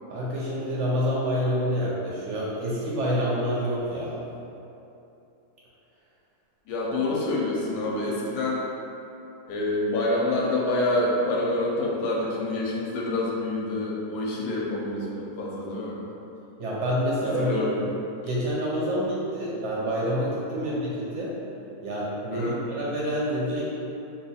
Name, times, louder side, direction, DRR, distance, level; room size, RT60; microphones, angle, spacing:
voice 1, 0.1-4.2 16.6-17.7 18.2-21.3 21.8-23.6, equal, 65° right, -6 dB, 0.8 m, -27 dB
voice 2, 6.7-8.6 9.5-16.0 17.4-17.8 20.6-20.7 22.3-22.5, left 2 dB, 90° left, -3 dB, 1.1 m, -27 dB
2.8 x 2.3 x 4.0 m, 2.8 s
omnidirectional pair, 1.6 m